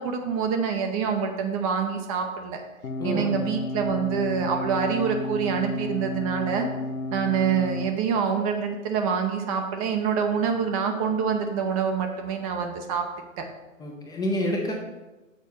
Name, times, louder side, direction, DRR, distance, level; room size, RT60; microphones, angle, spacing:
voice 1, 0.0-2.6 3.0-6.7 7.1-13.0 13.4-13.5, right 6 dB, 25° right, 4 dB, 0.7 m, -26 dB
sound 1, 2.8-7.9, left 1 dB, 80° left, 1.0 m, -32 dB
voice 2, 3.0-3.4 13.8-14.7, left 1 dB, 10° left, 0 dB, 0.7 m, -28 dB
6.7 x 4.5 x 6.7 m, 1.1 s
hypercardioid pair, 125°, 41 cm